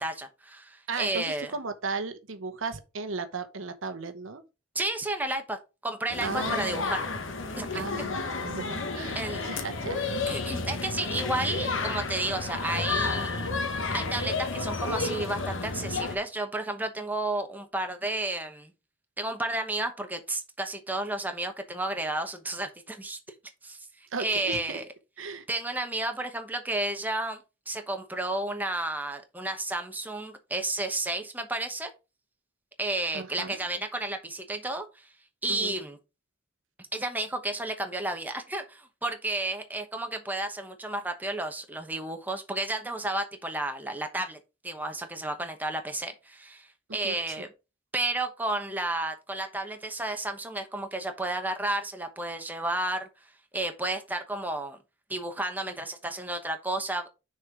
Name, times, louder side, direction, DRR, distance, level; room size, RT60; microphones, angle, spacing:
voice 1, 0.0-1.5 4.7-5.6 5.8-7.0 7.6-7.9 9.1-9.5 10.3-13.5 13.8-18.7 19.2-23.2 23.6-23.8 24.2-24.9 25.5-27.4 27.7-31.9 32.8-35.1 35.4-36.0 36.9-44.4 44.6-47.5 47.9-53.1 53.5-54.8 55.1-57.1, right 2 dB, 10° right, 1.0 m, -32 dB
voice 2, 0.9-4.4 6.2-6.9 7.7-10.1 10.4-10.5 24.1-24.8 25.2-25.4 33.1-33.6 35.5-35.7 47.0-47.4, right 4 dB, 75° right, 0.9 m, -36 dB
sound 1, 6.1-16.2, left 4 dB, 70° left, 1.4 m, -31 dB
6.4 x 4.5 x 4.7 m
head